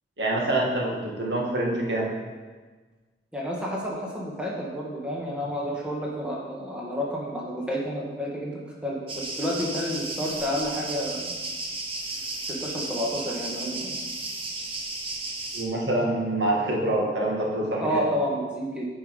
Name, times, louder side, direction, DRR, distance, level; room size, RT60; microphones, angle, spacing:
voice 1, 0.2-2.1 15.5-18.0, right 1 dB, 75° right, -2 dB, 1.8 m, -26 dB
voice 2, 3.3-11.3 12.5-14.0 16.7-16.8 17.7-18.9, equal, 5° right, -4 dB, 1.5 m, -30 dB
sound 1, 9.1-15.6, right 2 dB, 30° right, 1.1 m, -34 dB
9.1 x 5.5 x 5.3 m, 1.4 s
head